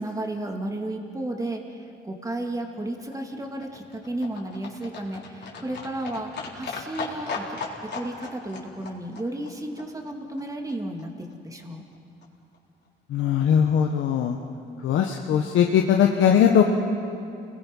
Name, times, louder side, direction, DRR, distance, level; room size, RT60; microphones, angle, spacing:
voice 1, 0.0-11.8, right 1 dB, 15° right, 2 dB, 2.7 m, -33 dB
Livestock farm animals working animals, 2.5-10.7 11.0-11.1 11.3-11.4 11.6-11.7 11.9-12.0 12.2-12.3 12.5-12.6 12.9-13.0 13.2-13.3, left 4 dB, 60° left, 3.9 m, -38 dB
voice 2, 13.1-14.4 14.8-16.6, left 8 dB, 80° left, 2 dB, 1.3 m, -20 dB
29.5 x 20.5 x 5.5 m, 2.5 s
cardioid pair, 90°, 20 cm